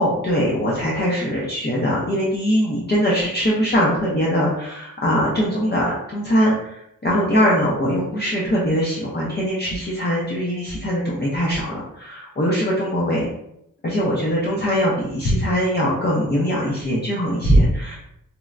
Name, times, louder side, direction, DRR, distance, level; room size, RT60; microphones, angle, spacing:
voice 1, 0.0-13.3 13.8-18.0, equal, 30° left, -5 dB, 0.5 m, -21 dB
4.2 x 2.1 x 2.4 m, 0.80 s
wide cardioid pair, 155°, 35 cm